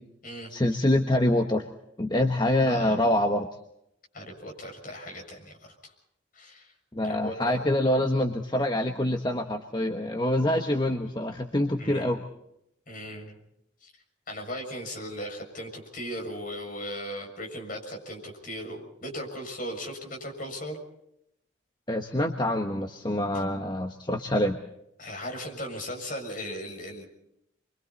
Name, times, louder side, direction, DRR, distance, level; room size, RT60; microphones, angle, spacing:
voice 1, 0.5-1.7 2.0-3.5 6.9-12.2 21.9-24.6, left 1 dB, 25° left, 5 dB, 1.2 m, -25 dB
voice 2, 2.7-3.1 4.1-5.9 6.3-6.7 7.0-7.7 11.8-12.1 12.9-13.3 13.8-13.9 14.3-20.8 23.3-23.4 25.0-27.0, equal, 45° left, 2 dB, 6.7 m, -37 dB
29.0 x 24.0 x 4.1 m, 0.79 s
head